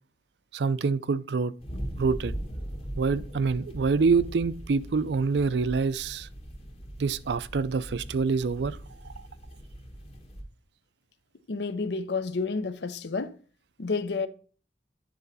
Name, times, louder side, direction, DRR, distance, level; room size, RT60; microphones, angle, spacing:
voice 1, 0.5-1.5 2.0-2.3 3.0-6.3 7.0-8.8 9.0-9.1, right 4 dB, 70° right, 0.4 m, -26 dB
sound 1, 1.6-10.4, equal, 35° left, 1.3 m, -40 dB
voice 2, 11.5-13.4 13.8-14.3, left 4 dB, 70° left, 0.6 m, -30 dB
9.3 x 3.9 x 4.0 m
head